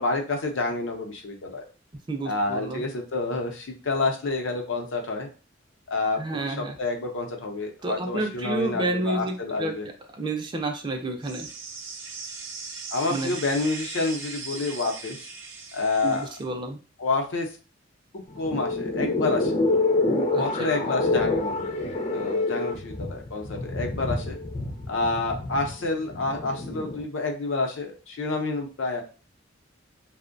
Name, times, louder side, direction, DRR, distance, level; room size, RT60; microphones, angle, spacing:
voice 1, 0.0-1.6 2.2-5.3 5.9-9.9 12.9-15.2 15.7-16.3 17.0-17.5 18.1-19.5 20.4-21.8 22.1-24.4 24.9-29.0, left 3 dB, 90° left, 2 dB, 0.6 m, -28 dB
voice 2, 2.1-2.8 6.2-6.8 7.8-9.8 10.1-11.5 13.1-13.4 16.0-16.8 20.3-20.7, right 2 dB, 25° right, 5 dB, 0.4 m, -30 dB
sound 1, 11.2-16.4, right 4 dB, 75° right, 0.6 m, -39 dB
sound 2, 18.3-27.0, left 2 dB, 40° left, 0.4 m, -27 dB
2.5 x 2.1 x 2.5 m, 0.35 s
head